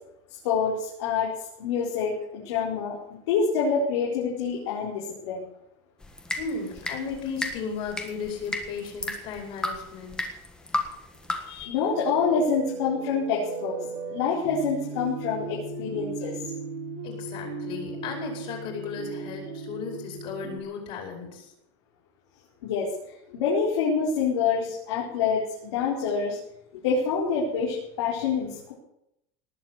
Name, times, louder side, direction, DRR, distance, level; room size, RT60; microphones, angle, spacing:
voice 1, 0.4-1.3 1.6-3.0 3.3-5.4 11.5-13.8 14.1-16.4 22.6-22.9 23.3-26.4 26.7-28.7, left 5 dB, 75° left, -4 dB, 4.6 m, -26 dB
sound 1, 6.0-11.6, left 2 dB, 5° left, 1.5 m, -34 dB
voice 2, 6.4-10.2 17.0-21.5, left 5 dB, 40° left, 1 dB, 4.8 m, -35 dB
sound 2, 11.8-20.6, right 4 dB, 40° right, 2.9 m, -37 dB
19.0 x 7.7 x 8.2 m, 0.79 s
supercardioid pair, 170°, 15 cm